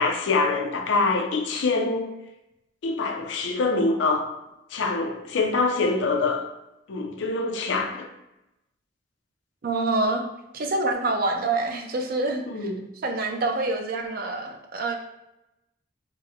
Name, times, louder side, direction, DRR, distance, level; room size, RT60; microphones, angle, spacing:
voice 1, 0.0-2.1 2.8-4.3 4.7-6.5 6.9-8.1 12.5-12.9, left 3 dB, 80° left, 0.4 m, -25 dB
voice 2, 9.6-10.2 10.5-12.4 13.0-15.0, right 2 dB, 50° right, 0.4 m, -26 dB
4.0 x 2.1 x 2.3 m
head